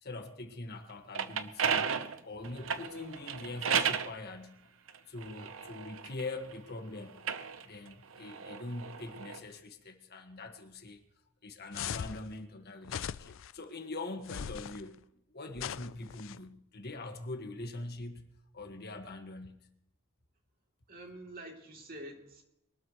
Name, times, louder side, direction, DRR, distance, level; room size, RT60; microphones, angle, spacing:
voice 1, 0.0-1.9 2.2-4.7 5.1-7.2 7.6-11.0 11.4-15.0 15.3-18.3 18.5-19.6, left 2 dB, 55° left, 1.7 m, -43 dB
sound 1, 0.9-4.1 4.9-6.6 7.1-9.4, right 7 dB, 80° right, 0.9 m, -34 dB
sound 2, 11.7-12.2 12.8-13.5 14.2-14.8 15.6-16.4, left 8 dB, 70° left, 0.4 m, -39 dB
voice 2, 20.9-22.4, right 1 dB, 50° right, 3.0 m, -47 dB
23.0 x 13.0 x 3.1 m
head